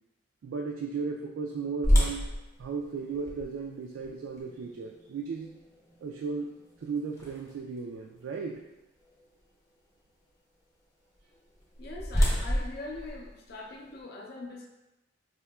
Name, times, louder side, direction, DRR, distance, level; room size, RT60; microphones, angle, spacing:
voice 1, 0.4-2.3 2.6-5.5 6.0-6.5 6.8-8.6, right 5 dB, 75° right, 1 dB, 0.3 m, -35 dB
sound 1, 1.8-7.8 8.3-8.4 9.0-9.3 11.3-14.0, equal, 15° left, 0.7 m, -30 dB
voice 2, 11.8-14.7, left 2 dB, 50° left, 0 dB, 0.5 m, -42 dB
4.2 x 2.7 x 2.2 m, 0.99 s
head